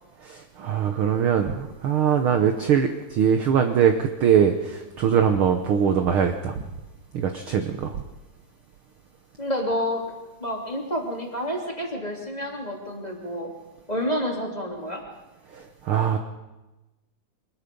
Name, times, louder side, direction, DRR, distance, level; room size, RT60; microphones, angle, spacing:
voice 1, 0.2-6.5 7.1-8.0 15.5-16.2, right 8 dB, 70° right, 6 dB, 1.3 m, -22 dB
voice 2, 9.4-10.0 10.4-13.5 13.9-15.0, equal, 15° left, -1 dB, 2.7 m, -29 dB
24.0 x 20.5 x 5.3 m, 1.1 s
omnidirectional pair, 3.7 m